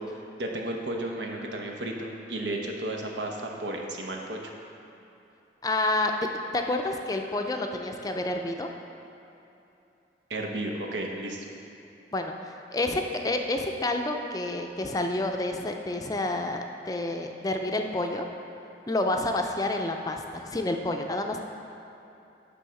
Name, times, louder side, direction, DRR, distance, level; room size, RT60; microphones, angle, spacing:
voice 1, 0.0-4.5 10.3-11.5, right 1 dB, 85° right, 1 dB, 1.0 m, -33 dB
voice 2, 5.6-6.3 6.5-8.7 12.1-12.3 12.7-18.3 18.9-21.4, left 2 dB, 20° left, 4 dB, 0.4 m, -29 dB
10.0 x 3.5 x 6.3 m, 2.9 s
head